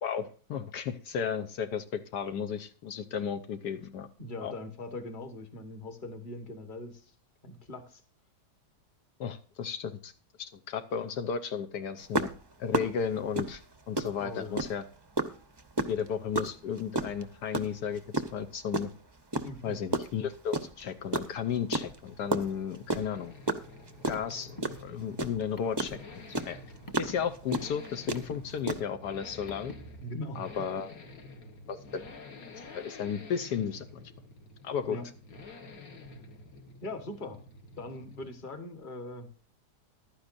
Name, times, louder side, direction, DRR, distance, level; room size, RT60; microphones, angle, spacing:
voice 1, 0.0-4.1 4.4-4.5 9.2-10.1 10.4-12.3 12.6-13.6 13.9-14.8 15.9-18.0 18.3-18.9 19.6-23.3 24.1-26.6 27.0-29.7 30.3-30.9 31.7-32.0 32.7-34.0 34.6-35.0, left 7 dB, 75° left, 9 dB, 1.3 m, -34 dB
voice 2, 4.2-7.1 7.4-8.0 14.2-14.6 19.4-19.8 30.0-30.7 34.9-35.1 36.8-37.4 37.8-39.3, left 2 dB, 30° left, 8 dB, 1.5 m, -41 dB
sound 1, 12.1-14.8 15.2-18.9 19.3-20.8 21.1-26.0 26.3-28.8, right 2 dB, 30° right, 0.5 m, -31 dB
Accelerating revving vroom, 21.3-38.6 38.8-38.9, left 2 dB, 55° left, 1.9 m, -50 dB
Car, 24.1-30.0, equal, 15° left, 0.8 m, -50 dB
15.0 x 11.5 x 2.6 m, 0.38 s
omnidirectional pair, 1.8 m